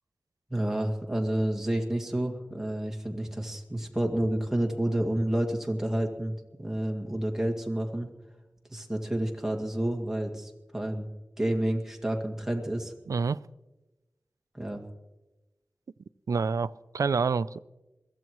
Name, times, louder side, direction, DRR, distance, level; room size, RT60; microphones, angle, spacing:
voice 1, 0.5-6.3 6.6-8.1 8.7-11.0 11.4-12.9 14.5-14.8, right 1 dB, 10° right, 2 dB, 2.2 m, -29 dB
voice 2, 13.1-13.4 16.3-17.6, right 5 dB, 75° right, 18 dB, 0.4 m, -27 dB
22.5 x 15.0 x 3.1 m, 1.1 s
wide cardioid pair, 75°, 6 cm